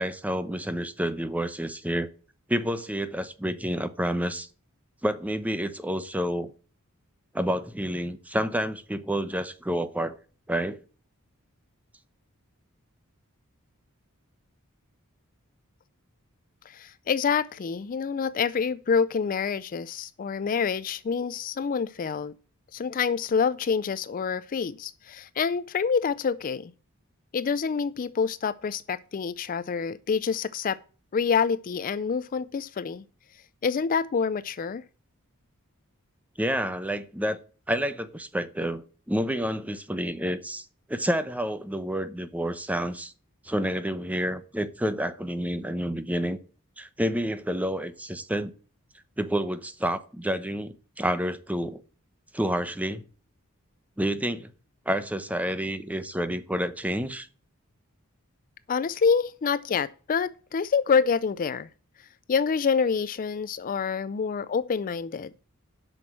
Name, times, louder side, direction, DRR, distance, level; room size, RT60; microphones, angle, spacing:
voice 1, 0.0-2.1 2.5-4.5 5.0-6.5 7.3-10.2 10.5-10.8 36.4-37.4 37.7-43.1 43.4-46.4 46.8-48.5 49.2-51.8 52.3-53.0 54.0-54.5 54.9-57.3, equal, 5° right, 0.7 m, -29 dB
voice 2, 16.7-22.3 22.7-26.7 27.3-30.8 31.1-33.0 33.6-34.8 58.7-61.7 62.3-65.3, left 6 dB, 40° left, 0.4 m, -27 dB
7.8 x 6.1 x 7.2 m
head